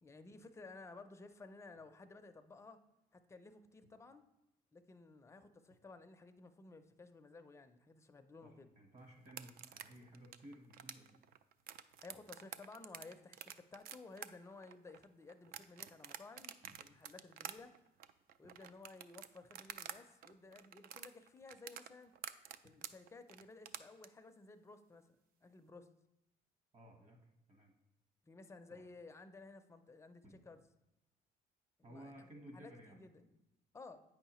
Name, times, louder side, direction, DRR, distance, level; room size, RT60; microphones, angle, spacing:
voice 1, 0.0-2.8 3.1-4.2 4.7-8.7 12.0-17.7 18.4-22.1 22.6-25.1 25.4-25.9 28.2-30.6 31.8-32.3 32.5-33.3 33.7-34.0, left 3 dB, 15° left, 8 dB, 0.4 m, -56 dB
voice 2, 8.4-11.2 16.6-16.7 26.7-27.2 27.5-27.7 28.7-28.8 30.2-30.4 31.8-33.0, right 1 dB, 45° right, 2 dB, 1.4 m, -56 dB
sound 1, 9.3-20.0 20.2-24.1, right 10 dB, 60° right, 0.4 m, -49 dB
8.4 x 5.6 x 3.0 m, 0.89 s
cardioid pair, 110°, 17 cm